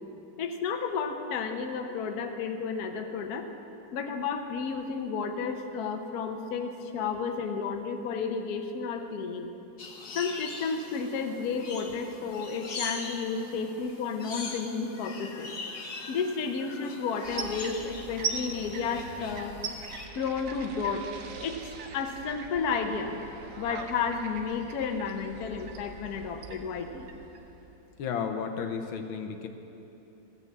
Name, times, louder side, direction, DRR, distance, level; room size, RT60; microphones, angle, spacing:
voice 1, 0.4-3.5 3.9-9.5 10.1-15.5 16.1-19.6 20.1-21.0 21.4-23.2 23.6-27.1, left 5 dB, 60° left, 5 dB, 1.2 m, -32 dB
sound 1, 9.8-20.1, left 3 dB, 45° left, 0.8 m, -42 dB
sound 2, 17.2-28.0, right 5 dB, 55° right, 1.0 m, -41 dB
voice 2, 28.0-29.5, left 6 dB, 85° left, 6 dB, 1.6 m, -33 dB
15.0 x 6.9 x 7.3 m, 2.9 s
omnidirectional pair, 2.1 m